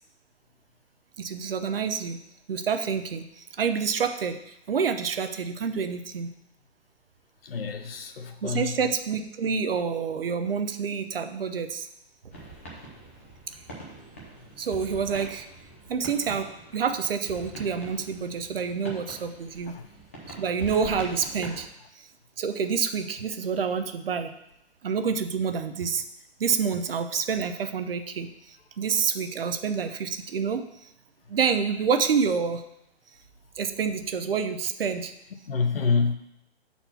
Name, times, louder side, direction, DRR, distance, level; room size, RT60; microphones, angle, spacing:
voice 1, 1.2-2.2 2.5-6.3 8.4-11.9 14.6-15.5 15.9-19.7 20.4-21.7 22.0-22.1 22.4-24.3 24.8-26.0 26.4-30.6 31.3-32.6 33.6-35.1, right 6 dB, 60° right, 8 dB, 0.7 m, -28 dB
voice 2, 7.4-8.7 35.5-36.1, left 4 dB, 60° left, 7 dB, 0.9 m, -26 dB
sound 1, 12.3-21.7, right 2 dB, 10° left, 0.6 m, -44 dB
7.1 x 4.3 x 5.7 m, 0.80 s
hypercardioid pair, 175°, 33 cm